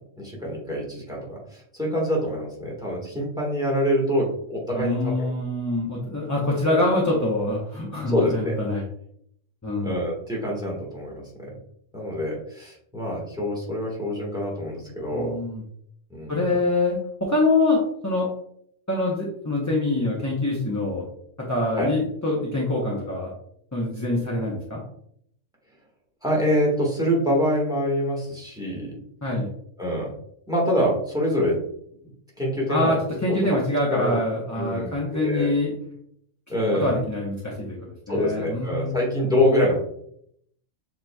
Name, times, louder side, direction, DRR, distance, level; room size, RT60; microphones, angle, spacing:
voice 1, 0.2-5.3 6.6-6.8 8.1-8.6 9.8-11.5 11.9-15.4 16.1-16.5 21.8-21.9 26.2-28.9 29.8-30.1 30.5-31.6 32.4-33.0 33.3-33.4 33.9-34.2 34.5-35.5 36.5-36.9 38.1-39.8, equal, 5° right, -3 dB, 1.4 m, -25 dB
voice 2, 4.8-8.8 9.6-9.9 15.1-15.6 16.3-18.3 18.9-21.0 21.4-23.3 23.7-24.8 29.2-29.5 32.7-35.7 36.7-37.8 38.1-39.4, left 2 dB, 20° left, -4 dB, 0.6 m, -25 dB
7.2 x 3.0 x 2.2 m, 0.69 s
omnidirectional pair, 1.3 m